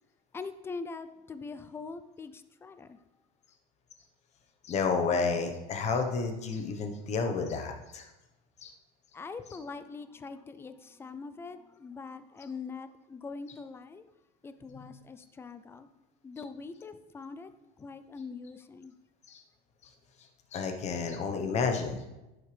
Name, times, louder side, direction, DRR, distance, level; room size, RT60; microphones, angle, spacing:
voice 1, 0.3-3.0 9.1-14.0 14.4-15.9 16.2-17.5 17.8-18.9, left 4 dB, 10° left, 11 dB, 0.4 m, -43 dB
voice 2, 4.6-8.1 8.6-8.7 14.7-14.9 19.3-19.4 20.5-22.0, left 4 dB, 30° left, 4 dB, 1.1 m, -31 dB
11.0 x 7.9 x 3.3 m, 1.0 s
cardioid pair, 150°, 21 cm